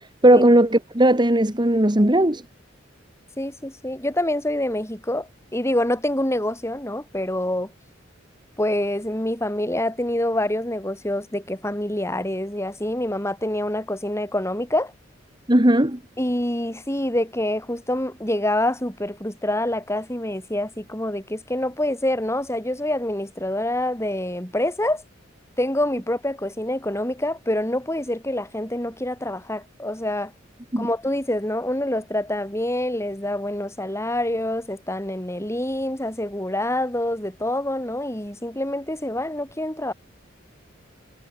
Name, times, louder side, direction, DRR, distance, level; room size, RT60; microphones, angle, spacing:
voice 1, 0.2-2.4 15.5-16.0 30.7-30.9, right 1 dB, 25° right, 2.0 m, -17 dB
voice 2, 3.4-7.7 8.6-14.9 16.2-25.0 25.6-30.3 30.8-39.9, left 1 dB, 15° left, 6.1 m, -26 dB
head